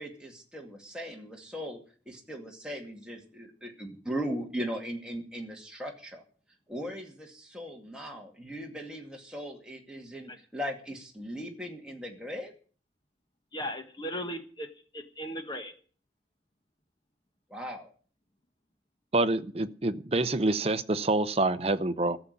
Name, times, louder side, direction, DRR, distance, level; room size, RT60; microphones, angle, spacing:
voice 1, 0.0-1.8 2.1-6.2 6.7-12.5 17.5-17.9, equal, 5° right, 0 dB, 2.2 m, -38 dB
voice 2, 13.5-14.7 14.9-15.7, equal, 25° left, 7 dB, 1.4 m, -37 dB
voice 3, 19.1-22.2, right 2 dB, 35° right, 11 dB, 0.7 m, -27 dB
13.5 x 7.1 x 9.7 m, 0.42 s
head